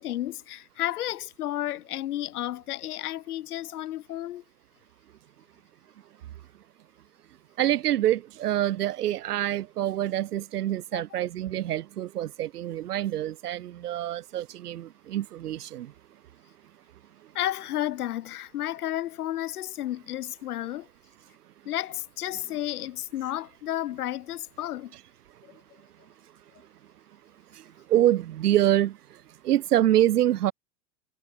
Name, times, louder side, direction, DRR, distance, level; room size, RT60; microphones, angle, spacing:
voice 1, 0.0-4.4 10.9-11.0 17.3-20.9 21.6-24.9, left 13 dB, 75° left, 1.5 m, -32 dB
voice 2, 7.6-15.9 27.9-29.0 29.4-30.5, right 12 dB, 85° right, 1.8 m, -26 dB
supercardioid pair, 175°, 45 cm